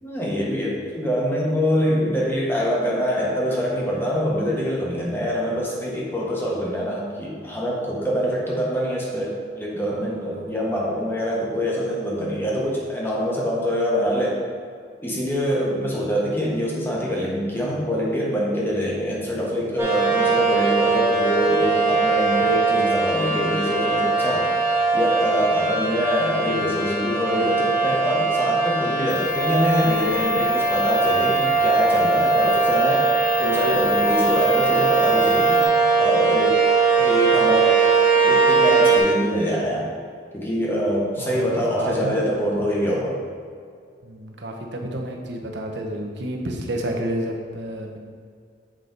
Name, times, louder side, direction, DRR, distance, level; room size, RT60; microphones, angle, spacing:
voice 1, 0.0-14.4 15.0-24.5 24.9-33.1 33.4-35.7 36.0-36.6 37.0-37.9 38.2-39.9 40.3-43.2, equal, 10° left, -4 dB, 1.2 m, -24 dB
voice 2, 9.9-10.3 41.2-42.1 44.0-48.0, right 1 dB, 65° right, 1 dB, 1.0 m, -30 dB
sound 1, 19.8-39.0, right 4 dB, 15° right, 1.1 m, -20 dB
sound 2, 29.1-35.6, left 4 dB, 35° left, 0.7 m, -29 dB
7.7 x 4.9 x 4.0 m, 2.1 s
head